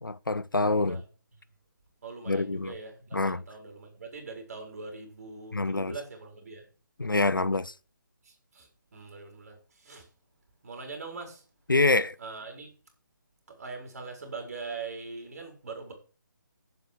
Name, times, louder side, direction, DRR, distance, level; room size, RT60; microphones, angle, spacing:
voice 1, 0.0-1.0 2.3-2.7 3.1-3.4 5.5-5.9 7.0-7.7 11.7-12.1, left 2 dB, 80° left, 0.7 m, -26 dB
voice 2, 2.0-6.7 8.2-10.1 10.6-11.4 12.2-12.7 13.5-15.9, right 4 dB, 45° right, 4.7 m, -42 dB
7.8 x 7.2 x 7.5 m
figure-of-eight pair, 145°, 11 cm